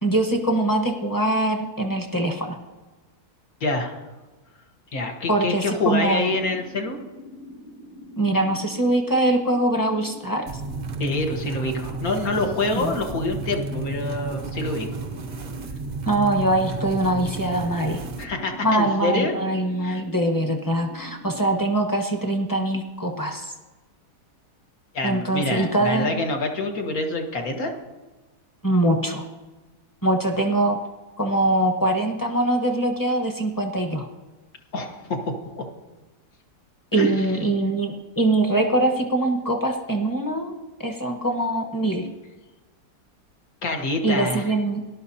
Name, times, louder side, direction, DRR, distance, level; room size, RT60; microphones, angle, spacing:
voice 1, 0.0-2.6 5.3-6.4 8.2-10.4 12.8-12.9 16.1-18.0 18.6-23.5 25.0-26.1 28.6-29.2 30.0-30.8 31.2-34.1 36.9-40.5 40.8-42.1 44.0-44.8, right 1 dB, 15° left, 2 dB, 1.0 m, -23 dB
voice 2, 3.6-4.0 4.9-7.0 11.0-14.9 18.2-19.3 19.8-20.0 24.9-27.7 34.7-35.6 36.9-37.3 43.6-44.5, left 2 dB, 65° left, 3 dB, 1.8 m, -26 dB
sound 1, 6.2-21.5, left 1 dB, 80° left, 4.5 m, -44 dB
sound 2, 10.5-18.2, right 4 dB, 55° right, 0.4 m, -32 dB
18.0 x 11.5 x 2.8 m, 1.2 s
omnidirectional pair, 1.7 m